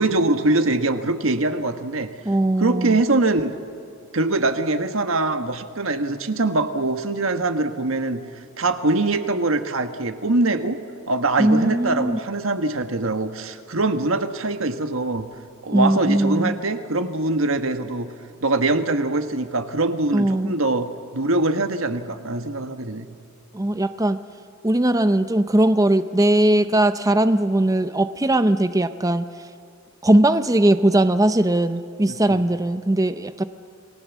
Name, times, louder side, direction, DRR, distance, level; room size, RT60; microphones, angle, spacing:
voice 1, 0.0-2.1 2.6-3.5 4.1-8.2 8.6-10.8 11.1-15.3 15.6-18.1 18.4-23.1 32.1-32.4, right 2 dB, 90° right, 8 dB, 1.4 m, -23 dB
voice 2, 2.2-3.0 11.4-12.2 15.7-16.6 20.1-20.6 23.5-24.2 24.6-29.3 30.0-33.4, right 1 dB, 15° right, 11 dB, 0.6 m, -19 dB
29.0 x 19.5 x 7.3 m, 2.5 s
head